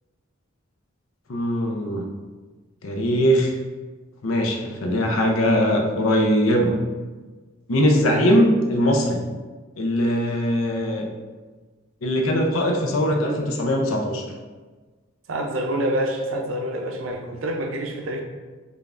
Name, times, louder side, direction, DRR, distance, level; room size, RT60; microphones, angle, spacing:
voice 1, 1.3-2.0 2.8-3.5 4.2-6.8 7.7-9.2 9.8-11.1 12.0-14.2, equal, 85° left, 2 dB, 0.6 m, -21 dB
voice 2, 15.3-18.2, right 1 dB, 75° right, 2 dB, 0.5 m, -27 dB
5.0 x 2.4 x 2.5 m, 1.3 s
head